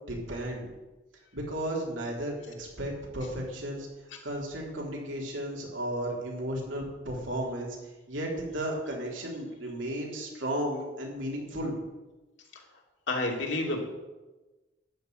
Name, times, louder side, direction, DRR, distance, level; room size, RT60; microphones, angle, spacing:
voice 1, 0.1-0.7 1.3-3.9 4.2-7.8 8.1-11.7, right 1 dB, 90° right, -1 dB, 3.7 m, -34 dB
voice 2, 13.1-13.8, left 2 dB, 75° left, 0 dB, 2.8 m, -29 dB
13.0 x 6.1 x 9.1 m, 1.1 s
head